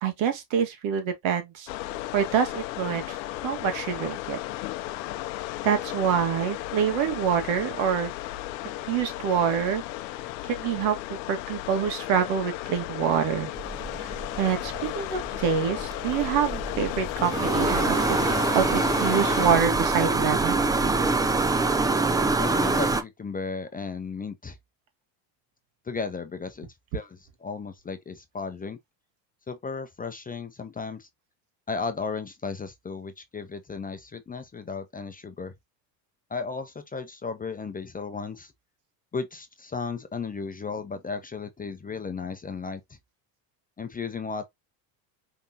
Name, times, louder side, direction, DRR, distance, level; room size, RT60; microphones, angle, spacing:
voice 1, 0.0-1.7 2.1-4.4 5.6-8.1 8.9-9.8 10.4-13.5 14.0-18.2 18.5-20.6, right 7 dB, 65° right, 1.8 m, -26 dB
Beach Waves Loop Example, 1.7-19.6, left 16 dB, 90° left, 0.7 m, -34 dB
sound 1, 13.5-23.0, right 3 dB, 10° right, 0.3 m, -25 dB
voice 2, 22.4-24.6 25.8-26.7 26.9-28.8 29.5-31.1 31.7-35.5 36.3-38.5 39.1-42.8 43.8-44.5, left 4 dB, 15° left, 0.7 m, -34 dB
5.3 x 3.6 x 2.8 m
supercardioid pair, 95°, 50 cm